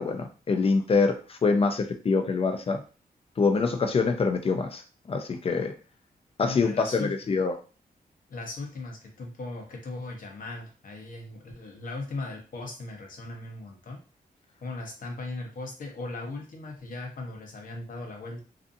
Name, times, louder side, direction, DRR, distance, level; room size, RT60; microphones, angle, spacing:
voice 1, 0.0-2.8 3.4-4.8 5.1-5.7 6.4-7.5, left 4 dB, 40° left, 6 dB, 0.4 m, -25 dB
voice 2, 6.4-7.1 8.3-14.0 14.6-18.4, left 2 dB, 60° left, 2 dB, 0.7 m, -38 dB
2.5 x 2.4 x 2.5 m, 0.36 s
wide cardioid pair, 145°, 16 cm